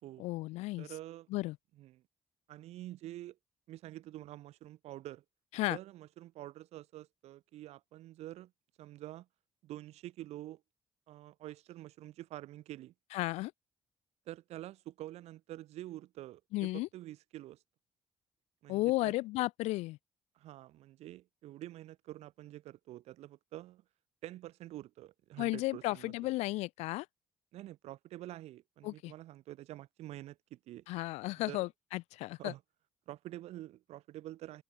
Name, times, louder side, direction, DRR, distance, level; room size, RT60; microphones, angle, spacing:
voice 1, 0.2-0.9 1.3-1.6 5.5-5.8 13.1-13.5 16.5-16.9 18.7-20.0 25.4-27.1 28.8-29.1 30.9-32.5, left 20 dB, 80° left, 0.6 m, -34 dB
voice 2, 0.8-1.3 1.8-2.0 2.5-3.4 3.7-5.2 5.7-8.5 8.8-9.3 9.6-10.6 11.1-12.9 14.3-17.6 18.6-19.1 20.4-23.8 24.2-26.3 27.5-30.9 31.5-31.7 32.4-32.6 33.1-34.6, right 15 dB, 75° right, 2.4 m, -47 dB
open air
supercardioid pair, 55°, 11 cm